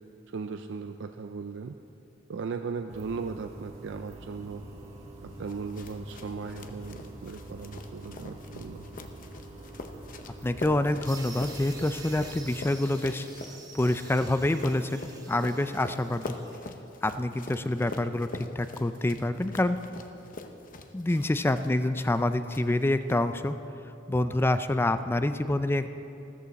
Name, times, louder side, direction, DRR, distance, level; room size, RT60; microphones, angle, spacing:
voice 1, 0.3-1.8 2.3-4.6 5.2-8.9, right 4 dB, 65° right, 6 dB, 0.4 m, -37 dB
sound 1, 2.9-12.8, right 1 dB, 35° right, 2.3 m, -46 dB
sound 2, 5.5-22.2 22.5-23.2, left 3 dB, 45° left, 0.7 m, -44 dB
voice 2, 10.4-13.3 13.7-15.0 15.3-16.4 17.0-18.3 18.6-19.8 20.9-23.6 24.1-25.9, left 1 dB, 10° left, 11 dB, 0.4 m, -27 dB
sound 3, 11.0-16.6, right 3 dB, 20° right, 1.3 m, -47 dB
14.5 x 13.5 x 4.1 m, 2.8 s
head